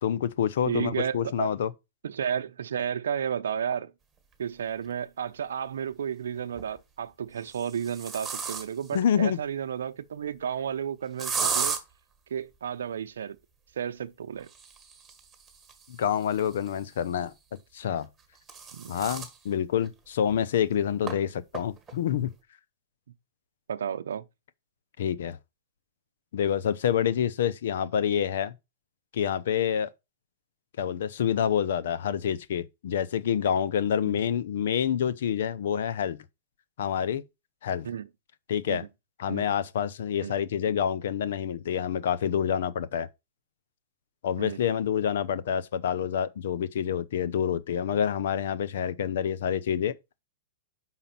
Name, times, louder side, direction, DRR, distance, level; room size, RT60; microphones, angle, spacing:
voice 1, 0.0-1.7 8.9-9.4 15.9-17.3 17.7-18.1 18.9-22.3 25.0-25.4 26.3-28.5 29.1-29.9 30.8-36.2 36.8-37.2 37.6-37.9 38.5-38.8 39.2-43.1 44.2-50.0, left 8 dB, 70° left, 0.7 m, -27 dB
voice 2, 0.7-1.5 2.0-3.9 4.4-11.8 12.3-13.4 13.8-14.5 18.7-18.9 23.7-24.2 34.0-34.2 37.8-38.1 38.7-38.9 39.3-39.5 40.2-40.3 44.4-44.6, right 8 dB, 85° right, 0.6 m, -32 dB
sound 1, 4.8-4.9 6.4-6.8 7.4-9.0 11.2-11.8 14.4-17.0 18.0-19.4 19.8-19.9 20.3-20.4 21.1-21.2 21.5-21.9, right 5 dB, 10° right, 1.7 m, -35 dB
5.7 x 5.1 x 5.8 m
hypercardioid pair, 135°, 0 cm